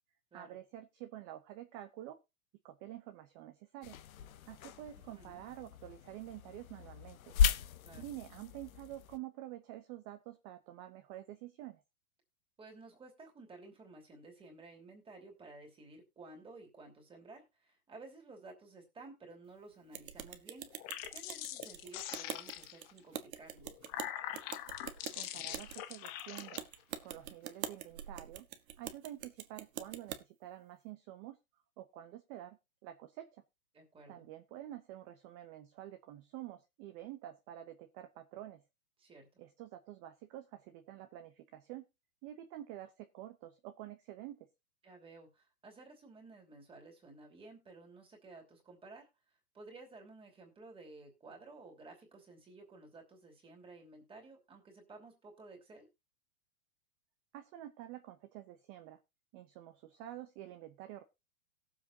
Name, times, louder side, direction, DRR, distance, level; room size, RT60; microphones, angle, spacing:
voice 1, 0.3-2.2 2.6-4.0 4.5-7.3 7.9-11.8 25.1-26.7 27.0-28.5 28.8-31.4 31.8-33.4 34.1-38.6 39.4-41.9 42.2-44.5 57.3-59.0 59.3-61.0, right 13 dB, 30° right, 8 dB, 0.8 m, -48 dB
sound 1, 3.8-9.2, left 7 dB, 70° left, 1.1 m, -36 dB
voice 2, 5.0-5.4 7.8-8.1 12.6-20.7 21.1-23.7 33.7-34.3 39.0-39.4 44.8-49.1 49.5-55.9, right 3 dB, 10° right, 1 dB, 2.9 m, -54 dB
sound 2, 19.9-30.2, right 10 dB, 70° right, 1.4 m, -45 dB
sound 3, 20.7-22.9 23.6-26.6, left 13 dB, 20° left, 0.5 m, -43 dB
18.0 x 7.5 x 2.8 m, 0.25 s
hypercardioid pair, 140°, 44 cm